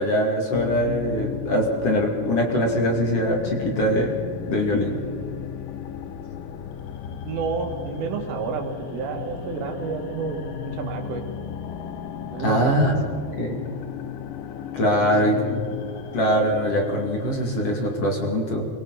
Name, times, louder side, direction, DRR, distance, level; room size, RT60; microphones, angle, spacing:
voice 1, 0.0-4.1 4.5-5.0 12.4-13.0 13.4-13.6 14.7-15.4 16.1-18.7, equal, 40° left, 1 dB, 2.5 m, -22 dB
sound 1, 0.5-18.0, left 8 dB, 90° left, 2.0 m, -35 dB
voice 2, 7.1-11.2 12.3-13.0 15.2-15.6, right 4 dB, 85° right, 2 dB, 4.8 m, -30 dB
28.0 x 23.0 x 4.1 m, 2.1 s
omnidirectional pair, 5.5 m